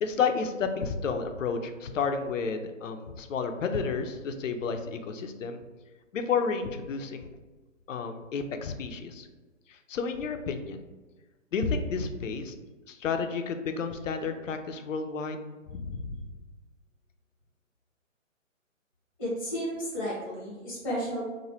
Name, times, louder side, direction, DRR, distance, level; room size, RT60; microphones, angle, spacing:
voice 1, 0.0-5.6 6.1-7.3 7.9-9.3 9.7-10.8 11.5-12.5 12.9-15.4 15.7-16.2, left 5 dB, 70° left, 7 dB, 0.5 m, -31 dB
voice 2, 19.2-21.2, equal, 5° left, -8 dB, 0.8 m, -32 dB
3.0 x 2.1 x 3.1 m, 1.2 s
hypercardioid pair, 150°, 40 cm